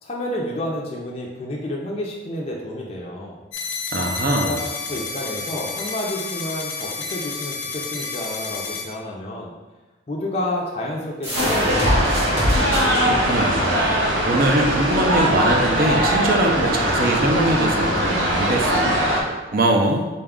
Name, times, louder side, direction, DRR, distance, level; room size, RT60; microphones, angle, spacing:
voice 1, 0.0-3.4 4.2-4.6 4.9-9.5 10.1-12.2, left 1 dB, 30° left, -2 dB, 0.4 m, -30 dB
sound 1, 3.5-8.8, left 4 dB, 85° left, 0.6 m, -30 dB
voice 2, 3.9-4.6 13.0-13.8 14.3-19.0 19.5-20.1, right 1 dB, 50° right, 1 dB, 0.4 m, -22 dB
sound 2, 11.2-16.6, equal, 10° right, 0.9 m, -27 dB
sound 3, 11.3-19.2, equal, 85° right, 0.7 m, -21 dB
4.0 x 2.3 x 3.5 m, 1.2 s
head